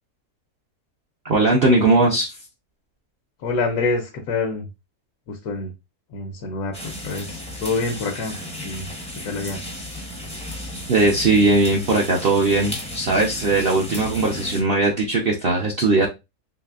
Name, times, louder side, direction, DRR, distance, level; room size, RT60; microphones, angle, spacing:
voice 1, 1.2-2.3 10.9-16.1, right 2 dB, 55° right, -1 dB, 0.6 m, -19 dB
voice 2, 3.4-4.7 5.3-5.7 6.1-8.9 9.2-9.6, left 3 dB, 80° left, 2 dB, 1.2 m, -27 dB
sound 1, 6.7-14.6, left 1 dB, 5° left, 0.5 m, -34 dB
4.0 x 3.2 x 2.3 m, 0.25 s
omnidirectional pair, 1.6 m